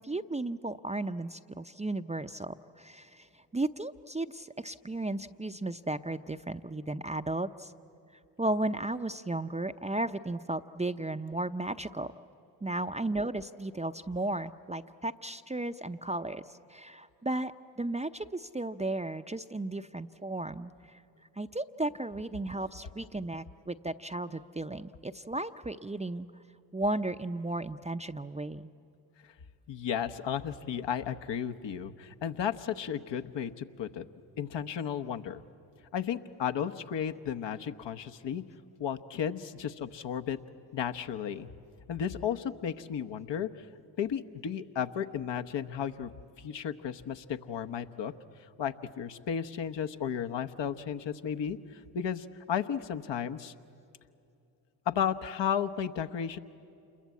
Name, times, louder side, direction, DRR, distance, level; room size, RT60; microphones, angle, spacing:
voice 1, 0.0-7.7 8.4-12.1 12.6-21.0 21.4-26.3 26.7-28.7, right 2 dB, 15° right, 8 dB, 0.7 m, -35 dB
voice 2, 29.7-34.0 34.4-35.4 35.9-38.4 38.8-40.4 40.7-41.5 41.9-43.5 44.0-46.1 46.4-48.1 48.6-53.5 54.9-56.4, left 8 dB, 60° left, 7 dB, 1.1 m, -34 dB
28.0 x 22.0 x 8.4 m, 2.7 s
hypercardioid pair, 40°, 48 cm